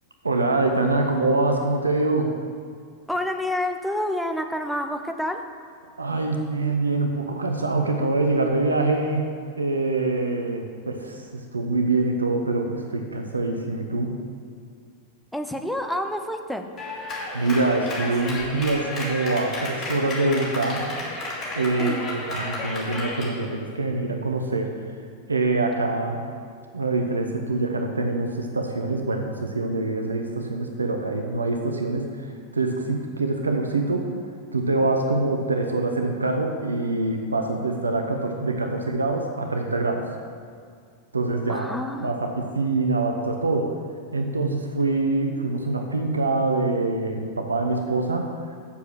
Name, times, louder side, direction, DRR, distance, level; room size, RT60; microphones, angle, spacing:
voice 1, 0.2-2.3 6.0-9.3 9.6-11.3 11.5-14.1 17.3-20.9 21.6-24.7 25.3-26.2 26.7-32.1 32.5-34.1 34.5-40.1 41.1-42.3 42.6-43.7 44.1-48.3, right 2 dB, 75° right, 3 dB, 0.8 m, -24 dB
voice 2, 3.1-5.4 15.3-16.7 21.8-22.1 41.5-42.1, left 1 dB, ahead, 5 dB, 0.7 m, -28 dB
Clapping, 16.8-23.3, left 2 dB, 20° left, 2.6 m, -32 dB
7.0 x 7.0 x 6.3 m, 2.2 s
figure-of-eight pair, 90°, 0 cm